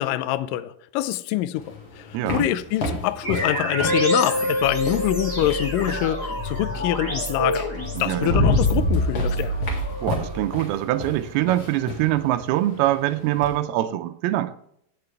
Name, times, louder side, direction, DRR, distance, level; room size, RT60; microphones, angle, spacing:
voice 1, 0.0-7.7 8.0-9.5, left 14 dB, 85° left, 2.0 m, -25 dB
sound 1, 1.6-6.1 7.4-7.5 7.9-13.6, left 2 dB, 45° left, 2.1 m, -29 dB
voice 2, 2.1-2.5 8.0-8.4 10.0-14.5, right 14 dB, 85° right, 2.4 m, -24 dB
sound 2, 3.2-10.4, equal, 20° left, 3.2 m, -27 dB
sound 3, 4.6-11.6, right 2 dB, 60° left, 3.5 m, -37 dB
15.5 x 6.8 x 3.3 m
omnidirectional pair, 4.6 m